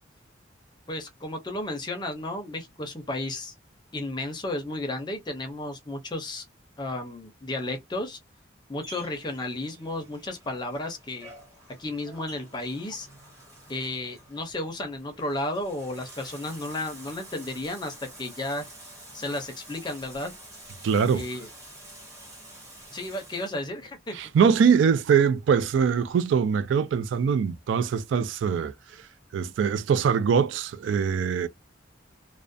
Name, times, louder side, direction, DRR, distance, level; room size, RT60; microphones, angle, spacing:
voice 1, 0.9-3.5 3.9-6.4 6.8-8.2 8.7-11.3 11.8-13.1 13.7-18.6 19.1-20.3 21.1-21.5 22.9-24.2, left 1 dB, 25° left, 0.5 m, -33 dB
Bathtub (filling or washing), 8.8-23.6, right 1 dB, 15° right, 0.8 m, -48 dB
voice 2, 20.8-21.2 24.1-28.7 29.3-31.5, right 6 dB, 75° right, 0.3 m, -22 dB
2.3 x 2.1 x 2.5 m
head